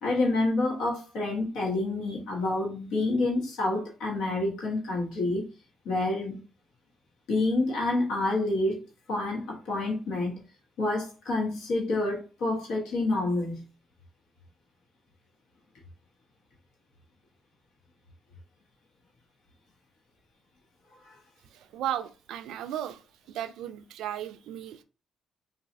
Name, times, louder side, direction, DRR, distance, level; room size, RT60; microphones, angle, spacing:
voice 1, 0.0-5.4 5.8-6.4 7.3-8.8 9.1-10.3 10.8-13.6 21.0-21.1, left 2 dB, 85° left, 1.1 m, -28 dB
voice 2, 21.5-23.0 23.3-24.8, right 11 dB, 85° right, 0.3 m, -35 dB
3.9 x 2.3 x 2.6 m
cardioid pair, 90°, 0 cm